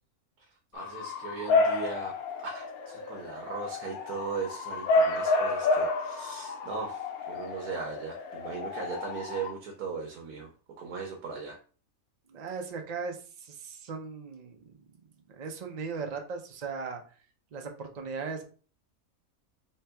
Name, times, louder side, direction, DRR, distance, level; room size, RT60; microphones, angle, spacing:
voice 1, 0.7-10.5 10.8-11.6, right 5 dB, 85° right, 1 dB, 1.2 m, -38 dB
Bark / Motor vehicle (road) / Siren, 0.8-9.5, left 3 dB, 80° left, 1.1 m, -30 dB
voice 2, 12.3-14.7 15.3-17.2 17.5-18.4, right 5 dB, 60° right, 3 dB, 0.4 m, -38 dB
3.3 x 2.9 x 3.3 m, 0.39 s
omnidirectional pair, 1.5 m